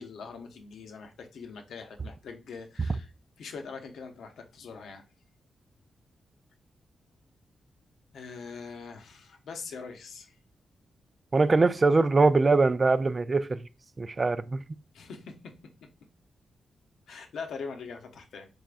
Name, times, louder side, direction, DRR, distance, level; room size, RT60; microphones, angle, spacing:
voice 1, 0.0-3.1 3.4-5.0 8.1-10.3 14.9-15.5 17.1-18.5, left 5 dB, 90° left, 0.7 m, -42 dB
voice 2, 11.3-13.6 14.0-14.6, right 3 dB, 30° right, 0.3 m, -22 dB
4.2 x 3.4 x 2.5 m
cardioid pair, 105°, 0 cm